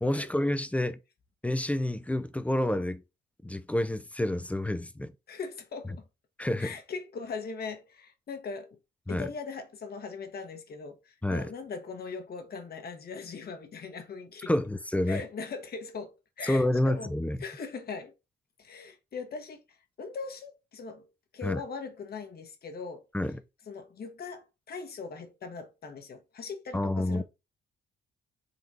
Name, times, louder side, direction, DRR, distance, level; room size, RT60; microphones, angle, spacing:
voice 1, 0.0-1.0 1.4-3.0 3.4-5.1 6.4-6.7 9.1-9.3 11.2-11.5 14.5-15.2 16.4-17.4 21.4-21.6 23.1-23.4 26.7-27.2, left 1 dB, 5° left, 0.5 m, -28 dB
voice 2, 5.3-6.0 6.6-8.8 9.1-14.5 15.1-17.1 17.4-18.1 18.6-19.6 20.0-21.1 21.3-23.1 23.7-27.2, left 5 dB, 50° left, 1.1 m, -40 dB
3.9 x 2.6 x 4.7 m
cardioid pair, 90°, 20 cm